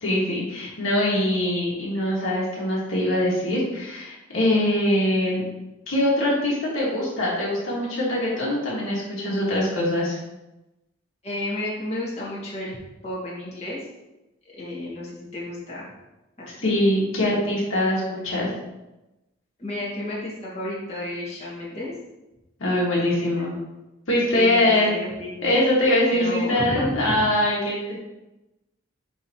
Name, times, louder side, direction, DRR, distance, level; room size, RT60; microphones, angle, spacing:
voice 1, 0.0-5.4 5.9-10.2 16.6-18.5 22.6-23.5 24.1-24.9 25.4-28.0, left 1 dB, 75° left, -5 dB, 1.8 m, -23 dB
voice 2, 11.2-12.8 13.0-13.8 14.6-15.9 16.6-16.7 19.6-21.9 23.0-23.5 24.3-25.6 26.1-27.2, left 1 dB, 30° left, -7 dB, 1.8 m, -32 dB
9.9 x 3.4 x 3.0 m, 0.99 s
head